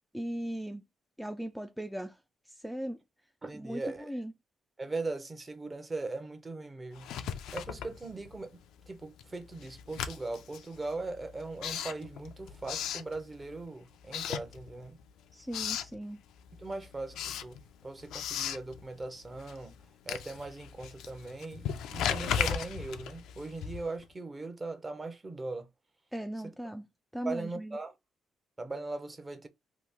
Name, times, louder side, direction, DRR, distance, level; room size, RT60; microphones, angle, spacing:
voice 1, 0.1-0.8 1.2-2.2 2.5-3.0 3.5-4.3 15.3-16.2 26.1-26.9 27.1-27.8, equal, ahead, 0.3 m, -38 dB
voice 2, 3.4-4.1 4.8-7.1 7.5-8.5 8.9-15.0 16.6-19.7 20.0-25.7 27.2-27.9 28.6-29.5, right 3 dB, 25° right, 0.7 m, -39 dB
Writing, 7.0-8.5 8.8-13.6 14.0-15.0 15.3-16.0 16.4-24.1, left 8 dB, 85° left, 0.4 m, -37 dB
2.9 x 2.3 x 3.5 m
cardioid pair, 90°, 0 cm